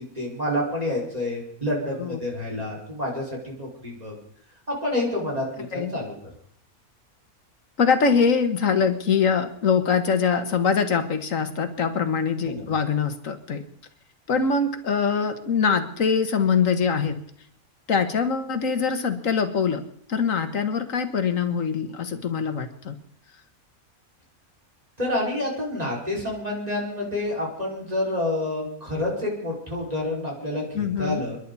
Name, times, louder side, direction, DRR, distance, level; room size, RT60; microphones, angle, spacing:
voice 1, 0.2-4.1 4.7-5.4 5.7-6.1 12.4-12.6 25.0-31.4, left 1 dB, 25° right, -3 dB, 5.4 m, -28 dB
voice 2, 5.7-6.0 7.8-13.6 14.3-17.2 17.9-19.8 20.1-23.0 30.7-31.2, left 6 dB, 60° left, 8 dB, 1.8 m, -23 dB
30.0 x 11.0 x 4.1 m, 0.65 s
omnidirectional pair, 1.6 m